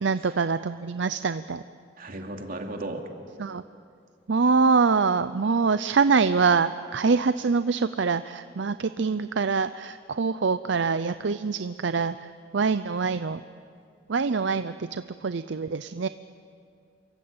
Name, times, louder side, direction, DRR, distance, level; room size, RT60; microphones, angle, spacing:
voice 1, 0.0-1.6 3.4-3.6 4.3-12.2 12.5-13.4 14.1-16.1, right 4 dB, 70° right, 12 dB, 0.6 m, -24 dB
voice 2, 2.0-3.1, right 2 dB, 50° right, 3 dB, 2.8 m, -35 dB
28.0 x 23.5 x 8.8 m, 2.4 s
head